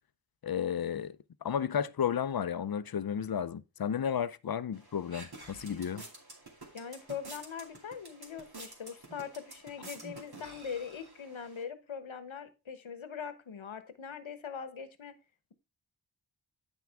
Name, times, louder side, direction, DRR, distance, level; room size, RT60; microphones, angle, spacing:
voice 1, 0.4-1.2 1.4-6.0, left 8 dB, 55° left, 0.5 m, -33 dB
sound 1, 4.7-11.6, right 2 dB, 55° right, 2.6 m, -50 dB
voice 2, 6.7-15.1, left 7 dB, 90° left, 1.1 m, -42 dB
9.8 x 5.9 x 3.4 m
wide cardioid pair, 75°, 46 cm